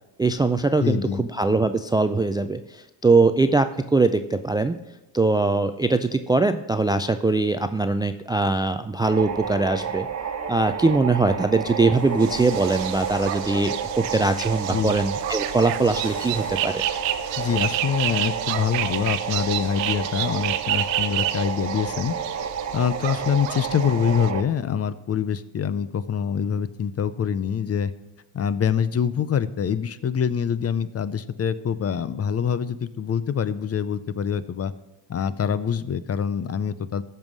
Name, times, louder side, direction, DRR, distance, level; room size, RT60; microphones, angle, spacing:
voice 1, 0.2-4.8 5.1-10.1 10.5-16.8, right 3 dB, 10° right, 10 dB, 0.3 m, -22 dB
voice 2, 0.8-1.3 14.7-14.9 17.4-22.2 22.7-27.9 28.3-34.7 35.1-37.0, left 7 dB, 35° left, 16 dB, 0.6 m, -25 dB
sound 1, 9.0-24.4, right 7 dB, 35° right, 1.4 m, -30 dB
sound 2, 11.9-18.0, equal, 10° left, 4.8 m, -45 dB
sound 3, 12.2-24.3, right 14 dB, 75° right, 0.8 m, -30 dB
14.0 x 5.6 x 6.2 m, 0.98 s
supercardioid pair, 90°, 46 cm